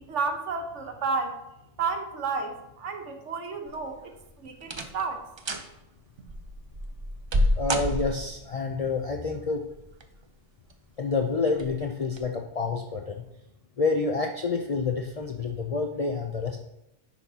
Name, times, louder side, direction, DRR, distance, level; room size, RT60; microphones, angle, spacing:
voice 1, 0.0-1.4 1.8-5.2, right 4 dB, 70° right, 5 dB, 1.2 m, -31 dB
sound 1, 3.7-4.1 4.6-5.1 5.4-5.7 6.3-8.5 9.7-10.2 10.7-10.8 11.5-11.7 12.1-12.2, equal, 45° right, 0.3 m, -28 dB
voice 2, 7.6-9.6 11.0-13.2 13.8-16.6, left 4 dB, 55° left, 3 dB, 0.4 m, -28 dB
10.0 x 5.7 x 2.8 m, 0.87 s
omnidirectional pair, 1.3 m